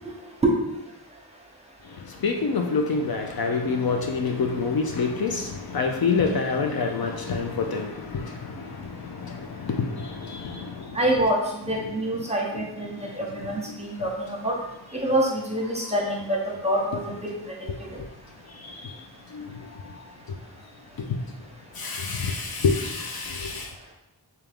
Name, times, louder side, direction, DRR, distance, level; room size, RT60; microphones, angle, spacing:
voice 1, 2.0-11.0 18.5-18.9 19.3-19.9 21.0-21.1 21.7-23.7, left 4 dB, 60° left, 3 dB, 0.5 m, -27 dB
voice 2, 10.9-11.4 11.7-14.5 14.9-17.3 17.8-17.9, right 1 dB, 15° right, -2 dB, 0.9 m, -26 dB
3.4 x 2.9 x 3.5 m, 0.89 s
wide cardioid pair, 65°, 42 cm